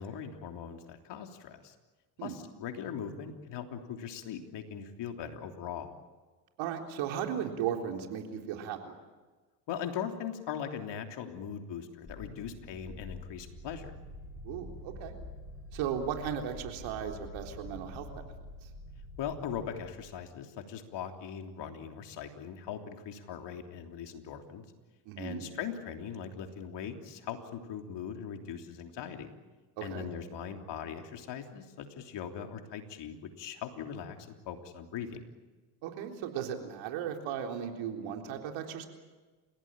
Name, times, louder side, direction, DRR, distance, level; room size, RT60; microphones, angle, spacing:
voice 1, 0.0-1.7 2.2-5.9 9.7-13.9 19.2-24.6 25.2-29.3 29.8-35.3, left 8 dB, 55° left, 4 dB, 3.4 m, -40 dB
voice 2, 6.6-8.9 14.4-15.2 15.7-18.3 25.1-25.5 29.8-30.2 35.8-38.9, right 8 dB, 65° right, 3 dB, 3.9 m, -36 dB
sound 1, 12.1-20.3, left 1 dB, 30° left, 7.5 m, -47 dB
30.0 x 16.5 x 9.0 m, 1.3 s
hypercardioid pair, 70°, 50 cm